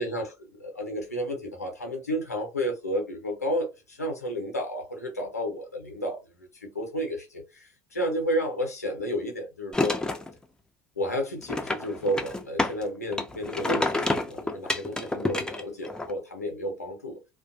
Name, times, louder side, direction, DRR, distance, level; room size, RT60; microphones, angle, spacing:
voice 1, 0.0-6.2 6.5-10.0 11.0-17.2, equal, 85° left, 0.6 m, -31 dB
sound 1, 9.7-10.3 11.4-12.8 13.1-16.1, left 2 dB, 10° left, 0.4 m, -28 dB
2.4 x 2.2 x 2.6 m
figure-of-eight pair, 60°, 8 cm